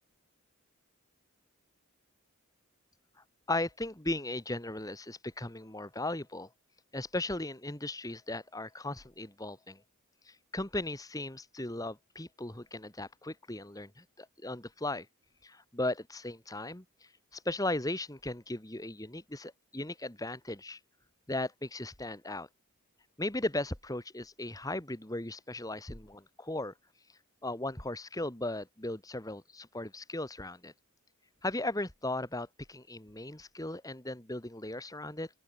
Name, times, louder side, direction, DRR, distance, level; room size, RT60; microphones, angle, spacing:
voice 1, 3.5-6.5 6.9-9.8 10.3-15.1 15.4-16.8 17.3-20.8 21.3-22.5 23.2-26.7 27.4-30.7 31.4-35.3, left 2 dB, 15° left, 1.8 m, -37 dB
open air
head